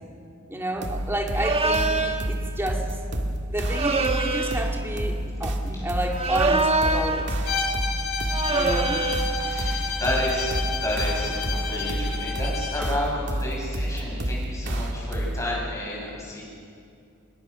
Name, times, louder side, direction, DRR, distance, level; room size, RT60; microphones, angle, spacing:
voice 1, 0.5-3.0 3.5-7.3 8.5-9.0, right 1 dB, 10° right, 1 dB, 2.6 m, -30 dB
sound 1, 0.8-15.6, equal, 55° right, 2.0 m, -29 dB
sound 2, 1.3-2.3 3.7-4.7 6.1-7.3 8.3-9.3, right 3 dB, 25° right, 1.2 m, -25 dB
Bowed string instrument, 7.4-12.9, left 4 dB, 70° left, 2.9 m, -31 dB
voice 2, 8.6-8.9 9.4-16.4, left 1 dB, 15° left, -3 dB, 7.5 m, -31 dB
27.5 x 21.5 x 6.4 m, 2.4 s
head